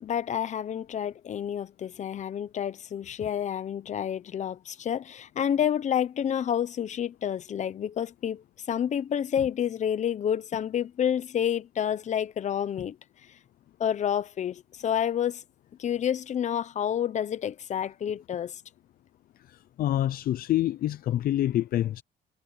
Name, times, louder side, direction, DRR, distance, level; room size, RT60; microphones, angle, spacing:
voice 1, 0.0-13.0 13.8-15.4 15.8-18.6, left 9 dB, 45° left, 1.1 m, -29 dB
voice 2, 19.8-22.0, left 13 dB, 60° left, 0.7 m, -26 dB
cardioid pair, 110°, 17 cm